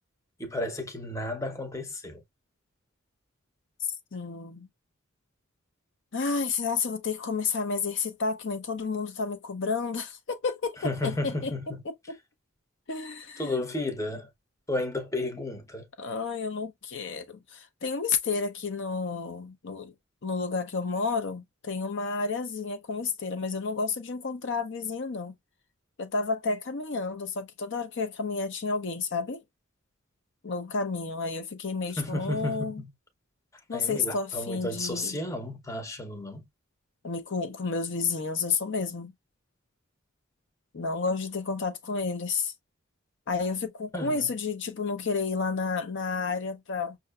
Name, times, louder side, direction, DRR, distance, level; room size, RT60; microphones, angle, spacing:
voice 1, 0.4-2.2 10.8-11.6 13.4-14.3 14.7-15.8 32.0-32.9 33.7-36.4 43.9-44.3, left 2 dB, 15° left, 0.8 m, -32 dB
voice 2, 4.1-4.7 6.1-12.2 12.9-13.6 16.0-19.9 20.2-25.3 26.0-29.4 30.4-32.8 33.7-35.2 37.0-39.1 40.7-42.5 43.3-47.0, left 4 dB, 60° left, 0.6 m, -31 dB
5.6 x 2.6 x 2.3 m
head